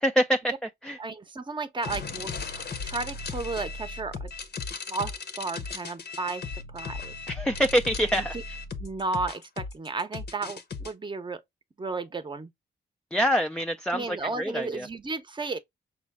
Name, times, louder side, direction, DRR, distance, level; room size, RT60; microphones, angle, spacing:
voice 1, 0.0-1.0 7.3-8.5 13.1-14.9, equal, 5° left, 0.4 m, -26 dB
voice 2, 1.0-4.3 4.9-6.5 6.7-7.1 8.2-8.4 8.8-11.4 11.8-12.5 13.9-15.6, right 3 dB, 25° right, 0.7 m, -33 dB
sound 1, 1.8-10.9, left 4 dB, 55° left, 0.8 m, -36 dB
6.1 x 2.1 x 3.5 m
cardioid pair, 95°, 20 cm